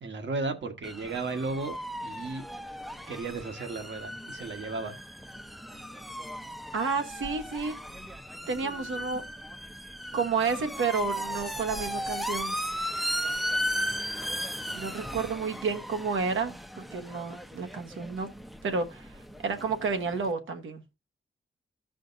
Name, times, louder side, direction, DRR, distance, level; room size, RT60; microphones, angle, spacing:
voice 1, 0.0-1.8 2.0-2.4 3.1-5.0, right 3 dB, 65° right, 1.3 m, -34 dB
sound 1, 0.8-20.3, equal, ahead, 0.5 m, -36 dB
voice 2, 6.7-7.7 8.5-9.2 10.1-12.6 14.7-16.5 16.9-18.3 18.6-19.1 19.4-20.8, right 5 dB, 90° right, 1.2 m, -30 dB
14.5 x 5.1 x 2.6 m
wide cardioid pair, 110°, 20 cm